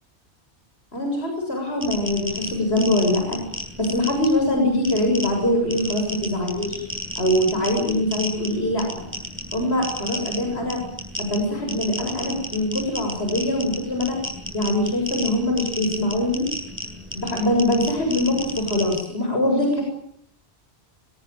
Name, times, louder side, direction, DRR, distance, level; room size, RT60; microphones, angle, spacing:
voice 1, 0.9-3.4 3.8-6.8 7.2-9.1 9.5-10.8 11.2-14.2 14.5-16.4 17.1-19.8, left 1 dB, 65° left, 2 dB, 7.7 m, -23 dB
sound 1, 1.8-19.0, equal, 10° right, 7.9 m, -33 dB
25.0 x 21.5 x 9.2 m, 0.69 s
omnidirectional pair, 1.2 m